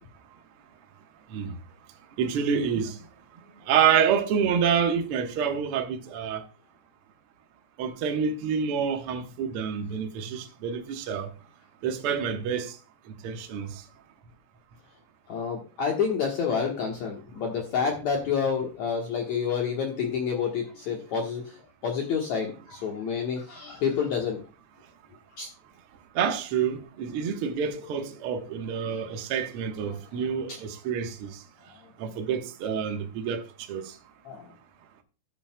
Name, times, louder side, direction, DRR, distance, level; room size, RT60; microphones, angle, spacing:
voice 1, 2.2-3.0 3.7-6.4 7.8-11.3 11.8-12.8 13.2-13.8 26.1-31.4 32.0-33.4 33.7-33.9, right 7 dB, 80° right, 1.2 m, -27 dB
voice 2, 15.3-21.4 21.8-24.4 25.4-25.5 34.3-34.4, left 6 dB, 60° left, 2.1 m, -28 dB
14.0 x 8.8 x 2.2 m
omnidirectional pair, 4.4 m